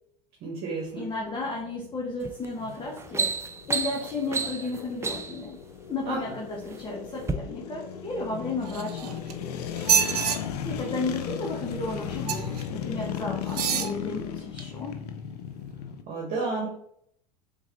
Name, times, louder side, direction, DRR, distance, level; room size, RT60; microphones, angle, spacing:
voice 1, 0.4-1.1 6.0-6.2 16.1-16.7, right 3 dB, 50° right, -3 dB, 1.3 m, -31 dB
sound 1, 0.8-16.0, left 8 dB, 80° left, 0.6 m, -37 dB
voice 2, 0.9-3.3 3.7-5.6 5.9-9.7 10.6-14.9, left 3 dB, 20° left, -3 dB, 1.0 m, -33 dB
sound 2, 2.2-2.5 2.8-5.5 6.3-6.8 7.2-7.3, right 4 dB, 15° right, 0.4 m, -30 dB
sound 3, 8.6-9.3 9.8-10.4 12.3-12.6 13.5-13.9 14.6-14.7, right 8 dB, 80° right, 0.5 m, -26 dB
3.8 x 3.7 x 3.1 m, 0.69 s
hypercardioid pair, 85°, 20 cm